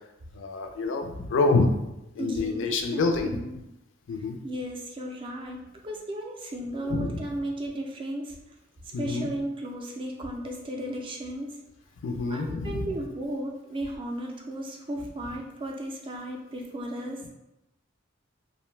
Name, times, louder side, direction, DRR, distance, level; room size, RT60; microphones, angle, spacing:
voice 1, 0.3-1.7 2.2-3.4 4.1-4.4 6.8-7.2 8.9-9.3 12.0-12.9, left 3 dB, 70° left, 4 dB, 0.4 m, -27 dB
voice 2, 2.2-3.5 4.4-8.6 8.8-11.6 12.3-17.2, right 1 dB, 25° right, 1 dB, 0.4 m, -35 dB
2.6 x 2.1 x 3.1 m, 0.91 s
head